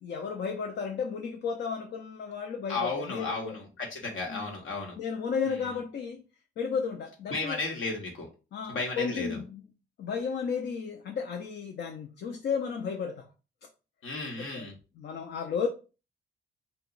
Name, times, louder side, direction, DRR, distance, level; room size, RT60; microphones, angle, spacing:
voice 1, 0.0-3.6 4.3-4.5 5.0-6.2 6.6-7.6 8.5-9.6 10.0-13.3 14.4-14.7 15.0-15.7, left 6 dB, 60° left, 0.6 m, -33 dB
voice 2, 2.7-5.0 5.5-5.6 7.3-8.3 8.7-9.4 14.0-14.7, left 3 dB, 80° left, 1.2 m, -34 dB
2.9 x 2.3 x 3.8 m
cardioid pair, 90°, 20 cm